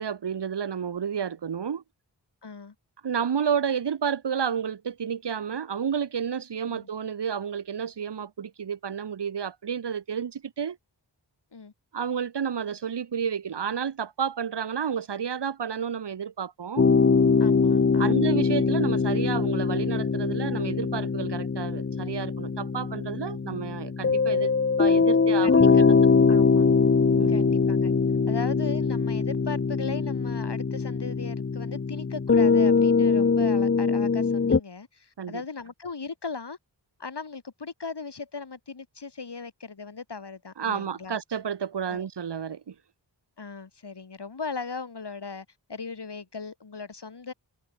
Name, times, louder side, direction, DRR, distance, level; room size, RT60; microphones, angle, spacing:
voice 1, 0.0-1.8 3.0-10.8 11.9-16.8 18.0-24.5 24.8-25.9 27.1-27.5 35.2-35.4 40.6-42.7, right 7 dB, 70° right, 1.0 m, -31 dB
voice 2, 2.4-2.7 6.7-6.9 11.5-11.7 17.4-18.2 25.4-25.9 26.3-26.7 27.3-27.9 28.3-36.6 37.0-41.2 41.9-42.1 43.4-47.3, left 4 dB, 65° left, 4.0 m, -38 dB
sound 1, 16.8-34.6, left 5 dB, 30° left, 0.7 m, -22 dB
wide cardioid pair, 80°, 43 cm